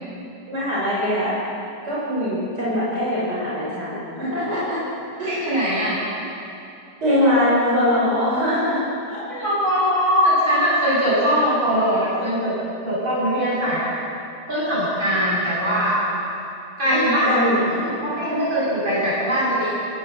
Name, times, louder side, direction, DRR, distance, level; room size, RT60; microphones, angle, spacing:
voice 1, 0.5-1.4 1.8-4.9 5.2-5.5 7.0-9.2 16.9-17.8, left 1 dB, 75° right, -8 dB, 6.8 m, -22 dB
voice 2, 5.3-6.0 9.3-12.5 12.8-13.8 14.5-15.9 16.8-19.7, equal, 30° right, -9 dB, 8.3 m, -21 dB
28.5 x 20.0 x 7.3 m, 2.7 s
omnidirectional pair, 1.8 m